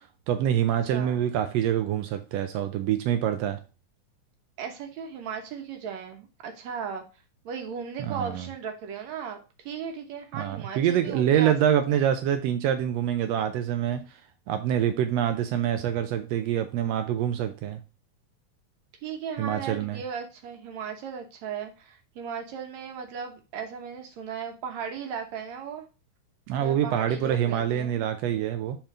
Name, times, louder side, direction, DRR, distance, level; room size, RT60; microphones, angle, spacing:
voice 1, 0.3-3.6 8.0-8.4 10.3-14.2 14.5-17.8 19.4-20.0 26.5-28.8, right 10 dB, 85° right, 1.5 m, -26 dB
voice 2, 0.9-1.2 4.6-7.0 7.5-11.5 11.9-12.0 19.0-25.9 26.6-28.0, right 7 dB, 70° right, 2.2 m, -36 dB
5.6 x 4.4 x 4.9 m
omnidirectional pair, 3.5 m